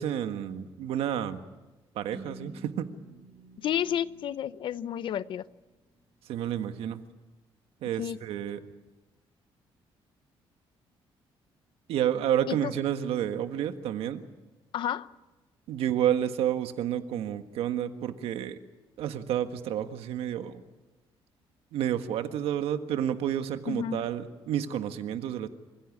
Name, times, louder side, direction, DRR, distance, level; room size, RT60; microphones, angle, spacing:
voice 1, 0.0-1.4 1.9-2.9 6.3-7.0 7.8-8.7 11.9-14.2 15.7-18.6 19.0-20.6 21.7-25.5, right 10 dB, 85° right, 8 dB, 1.5 m, -30 dB
sound 1, 2.1-6.0, right 2 dB, ahead, 7.1 m, -50 dB
voice 2, 3.6-5.4 8.0-8.2 12.5-12.7 14.7-15.1 23.7-24.0, left 10 dB, 60° left, 15 dB, 0.8 m, -31 dB
27.5 x 16.0 x 8.6 m, 1.1 s
cardioid pair, 140°, 10 cm